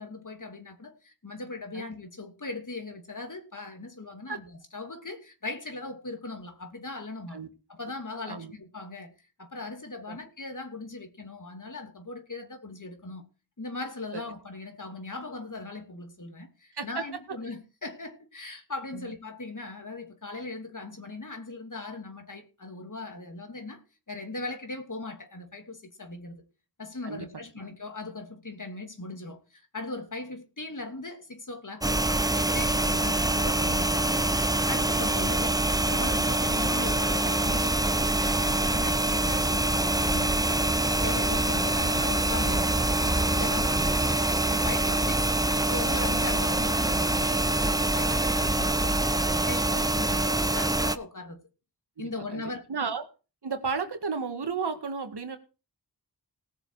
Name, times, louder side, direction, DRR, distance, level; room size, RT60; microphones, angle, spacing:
voice 1, 0.0-7.4 7.7-9.1 9.4-13.2 13.6-23.8 24.1-26.4 26.8-34.3 34.7-40.7 41.0-44.2 44.5-45.3 45.7-51.4 52.0-52.7, left 3 dB, 50° left, 3.0 m, -39 dB
sound 1, 31.8-51.0, right 2 dB, 10° right, 0.8 m, -25 dB
voice 2, 52.0-53.0 53.4-55.4, right 5 dB, 80° right, 2.0 m, -33 dB
19.0 x 6.9 x 4.9 m
cardioid pair, 45°, 39 cm